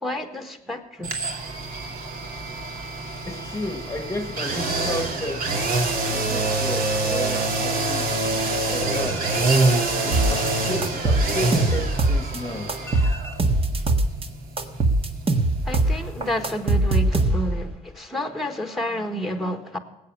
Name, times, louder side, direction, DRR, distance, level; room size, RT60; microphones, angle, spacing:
voice 1, 0.0-1.2 15.6-19.8, left 1 dB, ahead, 1.6 m, -30 dB
sound 1, 1.0-16.8 17.1-17.2, right 2 dB, 60° right, 2.5 m, -26 dB
voice 2, 3.3-5.6 6.1-8.1 8.7-13.4, left 2 dB, 15° left, 1.4 m, -33 dB
sound 2, 10.1-10.5 10.8-12.4 12.7-14.3 14.6-17.7, right 2 dB, 35° right, 1.5 m, -21 dB
18.5 x 8.4 x 6.1 m
cardioid pair, 110°, 17 cm